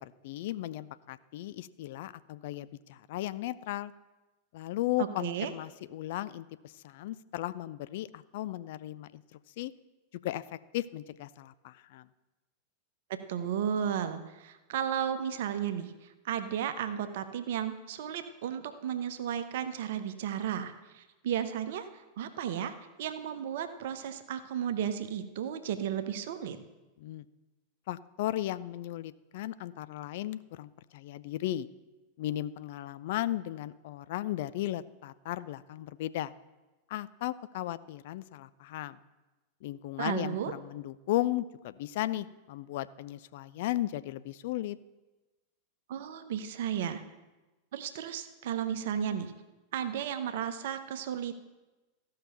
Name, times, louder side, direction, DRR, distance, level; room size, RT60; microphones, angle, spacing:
voice 1, 0.0-3.9 4.5-6.5 6.8-9.2 9.6-9.7 10.2-10.4 10.7-12.1 27.0-27.2 27.9-31.7 32.2-36.3 36.9-39.0 39.6-44.8, left 14 dB, 50° left, 16 dB, 0.4 m, -35 dB
voice 2, 5.0-5.5 13.1-15.9 16.2-26.6 40.0-40.5 45.9-47.0 47.7-49.3 49.7-51.3, right 9 dB, 55° right, 10 dB, 0.9 m, -34 dB
14.5 x 5.8 x 6.7 m, 1.1 s
figure-of-eight pair, 90°, 0 cm